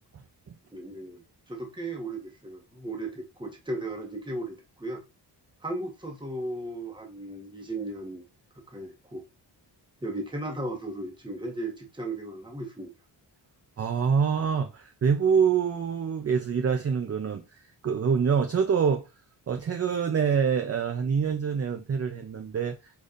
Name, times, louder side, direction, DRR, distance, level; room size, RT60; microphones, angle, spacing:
voice 1, 0.7-1.2 1.5-5.0 5.6-8.2 8.7-9.2 10.0-12.9, right 2 dB, 10° right, 1.1 m, -36 dB
voice 2, 13.8-19.1 19.5-22.9, right 6 dB, 35° right, 0.5 m, -26 dB
5.1 x 4.1 x 2.5 m
wide cardioid pair, 125°, 43 cm